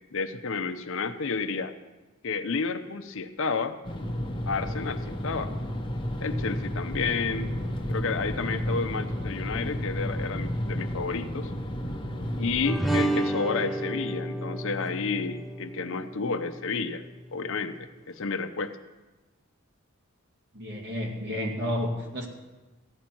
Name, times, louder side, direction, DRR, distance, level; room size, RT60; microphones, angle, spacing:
voice 1, 0.1-1.7 2.2-3.8 4.5-5.5 6.2-7.6 7.9-11.5 12.4-17.0 17.3-18.8, left 4 dB, 65° left, 9 dB, 0.7 m, -31 dB
sound 1, 3.8-12.7, equal, 25° left, 1.1 m, -32 dB
sound 2, 12.6-17.3, right 1 dB, ahead, 0.6 m, -31 dB
voice 2, 20.5-22.3, left 1 dB, 55° right, 0 dB, 2.3 m, -31 dB
15.5 x 10.0 x 4.5 m, 1.1 s
head